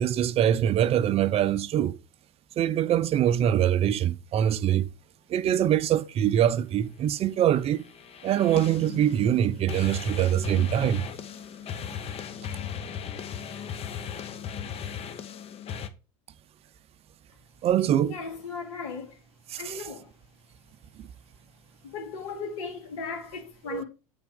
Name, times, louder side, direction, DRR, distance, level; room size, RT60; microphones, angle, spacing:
voice 1, 0.0-2.0 2.6-4.9 5.3-7.8 8.2-11.0 17.6-18.2 19.5-19.8 23.7-23.8, right 10 dB, 40° right, 0.5 m, -24 dB
sound 1, 7.5-15.9, left 8 dB, 35° left, 0.7 m, -37 dB
voice 2, 18.0-19.2 19.6-20.1 21.9-23.8, left 5 dB, 75° left, 1.9 m, -36 dB
8.1 x 3.5 x 3.7 m
hypercardioid pair, 90°, 16 cm